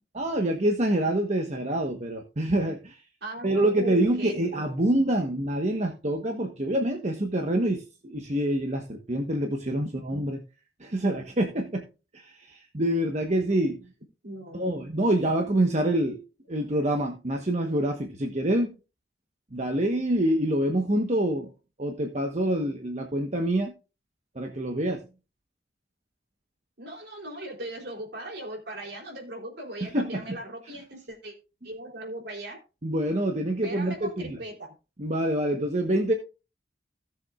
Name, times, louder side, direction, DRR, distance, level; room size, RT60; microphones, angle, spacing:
voice 1, 0.1-3.0 3.4-10.4 10.8-11.8 12.1-13.8 14.5-16.2 16.5-18.7 19.5-21.5 21.8-23.7 24.3-25.0 29.8-30.4 32.8-34.4 35.0-36.1, right 1 dB, 40° right, 3 dB, 1.2 m, -26 dB
voice 2, 3.2-4.7 14.2-14.8 26.8-31.3 31.6-32.6 33.6-34.7, right 1 dB, 65° right, 1 dB, 3.5 m, -38 dB
17.5 x 7.0 x 2.4 m, 0.32 s
head